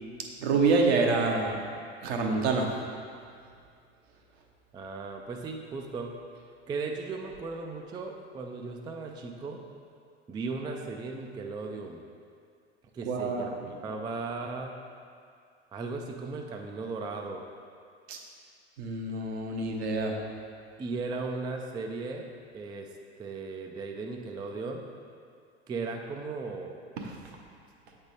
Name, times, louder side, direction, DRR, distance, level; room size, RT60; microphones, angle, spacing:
voice 1, 0.4-1.6 2.0-2.7 13.1-13.6 18.1-18.2 18.8-20.2, right 3 dB, 65° right, 1 dB, 1.0 m, -26 dB
voice 2, 4.7-6.1 6.7-9.6 10.3-12.0 12.9-14.7 15.7-17.4 20.8-22.3 22.5-22.9 23.2-24.8 25.7-26.8, right 4 dB, 15° right, 2 dB, 0.3 m, -36 dB
7.9 x 3.5 x 4.1 m, 2.2 s
figure-of-eight pair, 80°, 34 cm